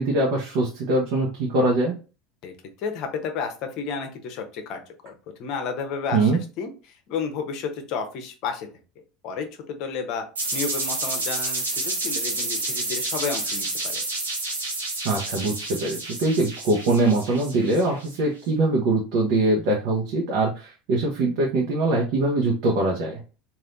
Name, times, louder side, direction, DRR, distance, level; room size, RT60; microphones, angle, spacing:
voice 1, 0.0-1.9 6.1-6.4 15.0-23.2, right 2 dB, 65° right, -2 dB, 0.9 m, -23 dB
voice 2, 2.4-5.1 5.4-6.3 6.6-8.7 9.2-10.2 10.5-14.0, left 5 dB, 55° left, 5 dB, 0.9 m, -32 dB
sound 1, 10.3-18.1, right 2 dB, 90° right, 1.1 m, -29 dB
3.4 x 2.6 x 2.6 m, 0.34 s
hypercardioid pair, 85°, 0 cm